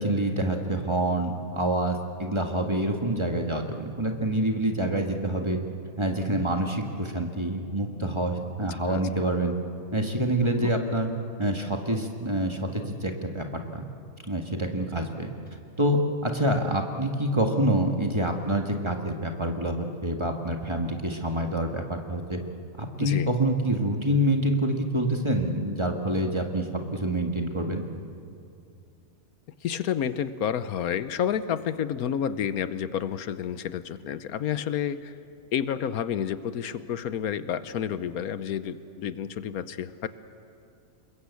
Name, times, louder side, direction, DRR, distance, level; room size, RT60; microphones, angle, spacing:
voice 1, 0.0-5.6 6.0-9.5 9.9-11.1 11.4-13.4 13.7-13.8 14.3-15.3 15.8-22.4 22.8-27.9, right 1 dB, 20° right, 3 dB, 1.8 m, -27 dB
voice 2, 29.6-35.1 35.5-40.1, left 9 dB, 85° left, 13 dB, 1.3 m, -30 dB
27.5 x 21.5 x 8.3 m, 2.5 s
omnidirectional pair, 1.5 m